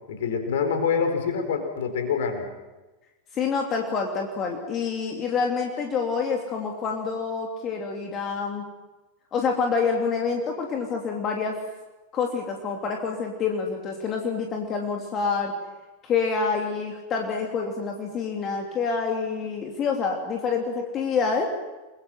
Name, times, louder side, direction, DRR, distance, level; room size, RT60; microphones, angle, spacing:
voice 1, 0.1-2.4, left 6 dB, 55° left, 6 dB, 4.8 m, -26 dB
voice 2, 3.3-8.6 9.3-11.6 12.1-15.5 16.0-21.5, left 5 dB, 30° left, 1 dB, 2.9 m, -27 dB
30.0 x 21.5 x 6.1 m, 1.1 s
figure-of-eight pair, 90°, 0 cm